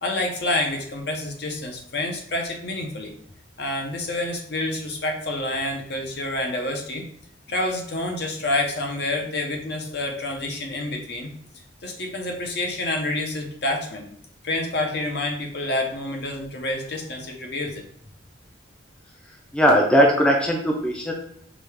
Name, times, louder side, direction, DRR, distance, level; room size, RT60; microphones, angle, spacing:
voice 1, 0.0-3.1 3.6-7.0 7.5-11.3 11.8-14.1 14.4-17.8, left 2 dB, 60° left, 2 dB, 0.7 m, -28 dB
voice 2, 19.5-21.1, equal, 5° left, 0 dB, 0.4 m, -18 dB
5.0 x 2.3 x 3.2 m, 0.64 s
head